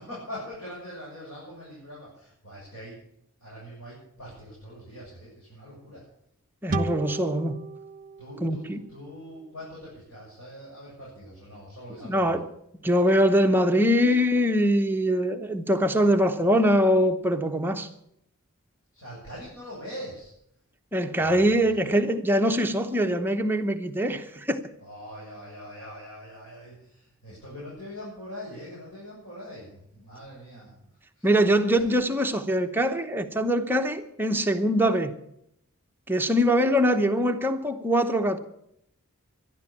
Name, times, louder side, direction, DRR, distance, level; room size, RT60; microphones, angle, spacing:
voice 1, 0.0-3.0 3.4-6.1 8.2-12.4 18.9-20.3 21.1-21.8 24.8-31.3 31.8-31.9, equal, 70° left, 7.5 m, -43 dB
voice 2, 6.6-7.6 8.4-8.8 12.0-12.4 12.8-17.9 20.9-24.6 31.2-35.1 36.1-38.4, equal, 10° right, 0.9 m, -23 dB
sound 1, 6.7-10.1, right 3 dB, 35° right, 1.1 m, -35 dB
13.0 x 11.5 x 8.7 m
head